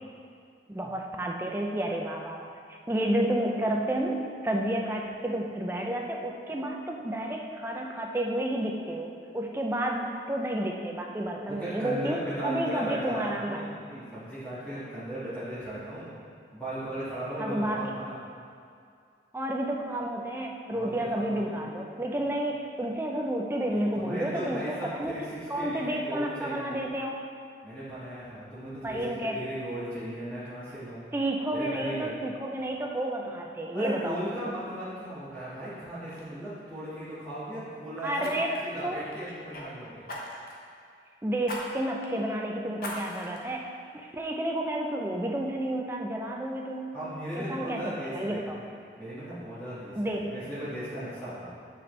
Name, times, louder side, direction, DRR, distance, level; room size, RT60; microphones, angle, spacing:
voice 1, 0.7-12.2 12.4-13.7 17.4-17.8 19.3-25.2 25.5-27.2 28.8-29.4 31.1-34.3 38.0-38.5 38.8-39.0 41.2-46.9 47.4-48.6 49.9-50.3, right 1 dB, 15° right, 0 dB, 0.4 m, -31 dB
voice 2, 11.5-16.1 16.5-18.2 20.7-21.5 23.7-26.8 27.6-31.0 31.5-32.1 33.7-40.0 46.9-48.6 49.0-51.5, right 1 dB, 10° left, -13 dB, 1.5 m, -37 dB
Fire, 35.5-35.7 36.1-36.3 38.2-39.6 40.1-40.6 41.4-41.6 42.0-42.1 42.8-43.4 43.9-44.0, left 1 dB, 50° left, 0.9 m, -39 dB
9.3 x 4.2 x 3.2 m, 2.3 s
head